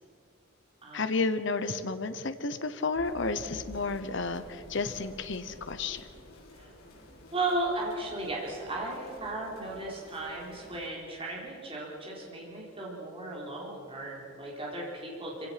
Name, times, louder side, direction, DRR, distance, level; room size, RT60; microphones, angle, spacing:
voice 1, 0.9-6.1, left 3 dB, 60° left, 10 dB, 1.0 m, -32 dB
sound 1, 3.0-10.9, left 1 dB, 90° left, 4.8 m, -54 dB
sound 2, 3.0-7.1, equal, 20° left, 2.2 m, -51 dB
voice 2, 7.3-15.5, right 2 dB, 25° right, -3 dB, 4.1 m, -35 dB
26.5 x 17.0 x 5.9 m, 2.6 s
head